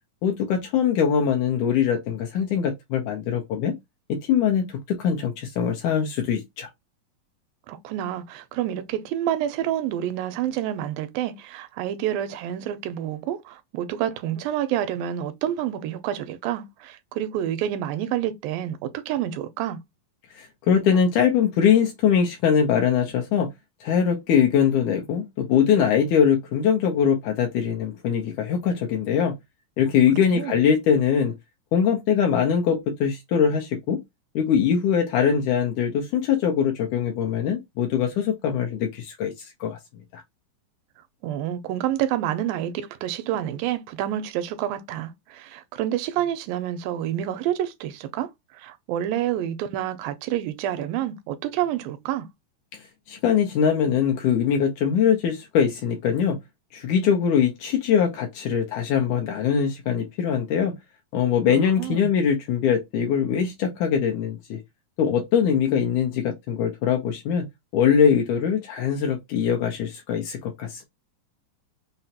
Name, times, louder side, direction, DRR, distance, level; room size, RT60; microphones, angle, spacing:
voice 1, 0.2-3.7 4.1-6.7 20.3-23.5 23.8-29.3 29.8-31.3 31.7-34.0 34.4-39.8 40.1-40.2 52.7-52.8 53.1-56.4 56.7-60.7 61.1-64.6 65.0-67.5 67.7-70.9, left 7 dB, 75° left, 2.0 m, -22 dB
voice 2, 7.7-19.8 30.2-30.6 41.2-52.3 61.5-62.1, right 11 dB, 85° right, 2.4 m, -28 dB
5.8 x 2.1 x 2.7 m
omnidirectional pair, 4.0 m